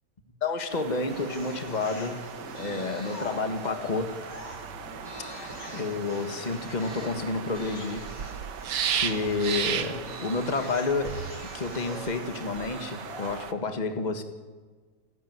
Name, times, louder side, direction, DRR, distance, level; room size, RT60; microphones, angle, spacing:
voice 1, 0.4-2.3 2.5-4.2 5.3-8.1 8.9-11.2 11.5-14.2, left 3 dB, 25° left, 7 dB, 1.7 m, -30 dB
sound 1, 0.7-13.5, right 8 dB, 85° right, 1.7 m, -36 dB
sound 2, 1.1-13.4, left 1 dB, 55° left, 6.9 m, -44 dB
sound 3, 2.7-10.3, left 1 dB, 75° left, 3.3 m, -52 dB
28.0 x 10.5 x 9.6 m, 1.4 s
omnidirectional pair, 1.8 m